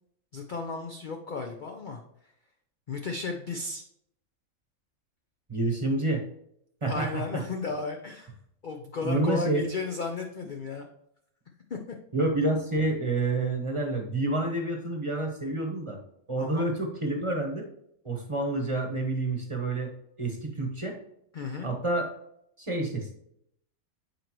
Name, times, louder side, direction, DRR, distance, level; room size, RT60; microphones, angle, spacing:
voice 1, 0.3-2.0 2.9-3.8 6.9-8.3 8.6-10.9 11.7-11.8 16.4-16.7 21.3-21.7, left 4 dB, 55° left, 3 dB, 0.5 m, -34 dB
voice 2, 5.5-6.2 6.8-7.4 9.0-9.7 12.1-16.0 16.3-17.6 18.0-19.9 20.2-21.0 21.6-22.1 22.6-23.1, right 2 dB, 25° right, 1 dB, 1.0 m, -28 dB
7.8 x 4.4 x 3.0 m, 0.74 s
omnidirectional pair, 1.5 m